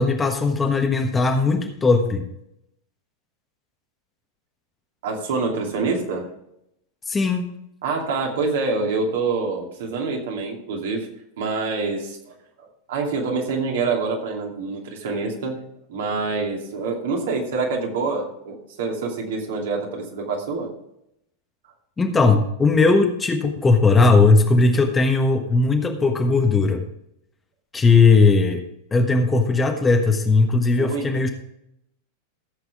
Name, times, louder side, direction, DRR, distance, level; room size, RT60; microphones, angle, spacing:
voice 1, 0.0-2.2 7.1-7.4 22.0-26.8 27.7-28.6 28.9-31.3, left 3 dB, 15° left, 4 dB, 1.4 m, -18 dB
voice 2, 5.0-6.3 7.8-11.1 11.4-12.3 12.9-15.6 15.9-20.7 30.8-31.1, right 4 dB, 55° right, 1 dB, 2.7 m, -26 dB
15.0 x 7.9 x 3.6 m, 0.78 s
figure-of-eight pair, 90°, 0 cm